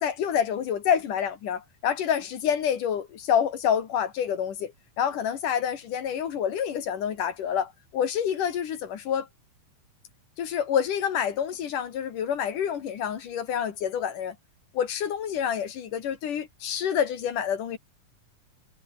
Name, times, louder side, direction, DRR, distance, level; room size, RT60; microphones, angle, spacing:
voice 1, 0.0-9.3 10.4-14.4 14.7-17.8, left 8 dB, 70° left, 3.5 m, -28 dB
omnidirectional pair, 3.9 m